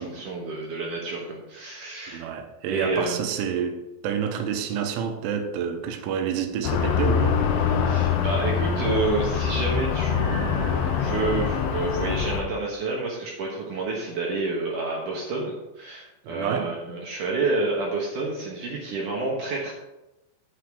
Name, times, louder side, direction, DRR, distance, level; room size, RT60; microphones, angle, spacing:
voice 1, 0.0-2.3 2.7-3.3 7.9-19.7, right 3 dB, 65° right, 2.1 m, -29 dB
voice 2, 2.1-7.7 16.2-16.7, right 7 dB, 90° right, 3.3 m, -29 dB
sound 1, 6.6-12.4, left 7 dB, 75° left, 3.2 m, -24 dB
9.0 x 6.0 x 4.9 m
omnidirectional pair, 5.4 m